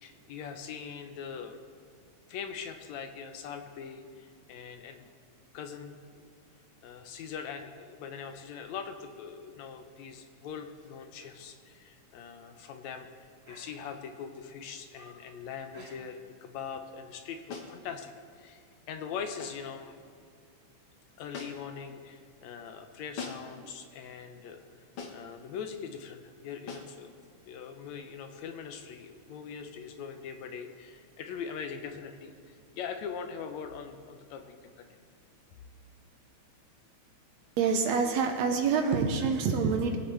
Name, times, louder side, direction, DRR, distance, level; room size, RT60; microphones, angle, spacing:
voice 1, 0.0-1.6 2.3-5.1 5.5-6.3 6.8-20.0 21.2-24.6 25.1-27.1 27.5-34.9, left 6 dB, 75° left, 6 dB, 1.9 m, -42 dB
sound 1, 9.0-9.4 9.8-10.1 10.6-10.8 11.2-11.4 11.7-11.8 12.5-12.9 13.4-14.2 14.6-15.3 15.7-16.4 16.7-16.9, right 1 dB, 40° right, 4.1 m, -57 dB
sound 2, 17.5-17.8 19.4-19.7 21.3-21.8 23.2-23.6 25.0-25.3 26.7-27.0, left 5 dB, 55° left, 1.6 m, -42 dB
voice 2, 37.6-40.0, right 5 dB, 70° right, 5 dB, 1.9 m, -26 dB
21.0 x 8.4 x 3.2 m, 2.2 s
omnidirectional pair, 3.4 m